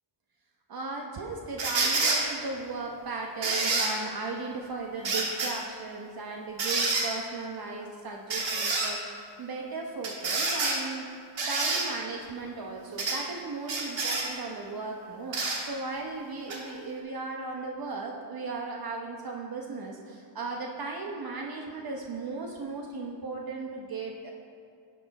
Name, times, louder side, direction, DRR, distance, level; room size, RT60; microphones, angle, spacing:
voice 1, 0.7-11.1 11.5-24.3, right 3 dB, 50° right, 1 dB, 1.1 m, -36 dB
sound 1, 1.6-2.2 3.4-3.9 5.0-5.5 6.6-7.1 8.3-8.9 10.0-10.8 11.4-11.8 13.0-13.2 13.7-14.3 15.3-15.6 16.5-16.6, right 3 dB, 65° right, 2.4 m, -27 dB
11.0 x 8.6 x 4.2 m, 2.5 s
cardioid pair, 95°, 47 cm